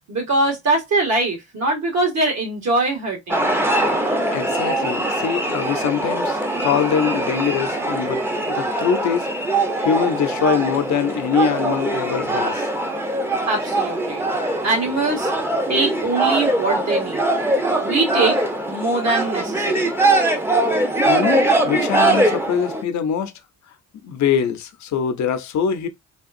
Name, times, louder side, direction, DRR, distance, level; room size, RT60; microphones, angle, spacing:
voice 1, 0.1-3.5 13.5-14.2 14.6-15.3 15.7-17.3 17.8-19.9, right 2 dB, 60° right, 1.9 m, -22 dB
sound 1, 3.3-22.8, right 2 dB, 10° right, 0.7 m, -22 dB
voice 2, 4.3-8.2 8.5-12.7 21.0-23.3 24.0-25.9, left 8 dB, 65° left, 0.7 m, -23 dB
3.4 x 2.4 x 2.5 m
cardioid pair, 90°, 30 cm